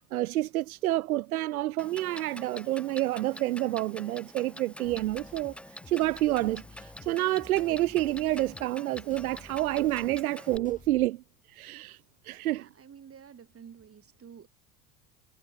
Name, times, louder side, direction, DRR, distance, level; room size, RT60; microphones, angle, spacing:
voice 1, 0.0-5.6 5.9-11.2 11.5-12.0 12.2-12.6, right 16 dB, 80° right, 0.7 m, -28 dB
Clock, 1.8-10.6, left 1 dB, 5° left, 2.6 m, -47 dB
sound 1, 4.8-11.1, left 4 dB, 20° left, 5.1 m, -52 dB
voice 2, 12.6-14.5, right 7 dB, 30° right, 7.1 m, -50 dB
hypercardioid pair, 75°, 43 cm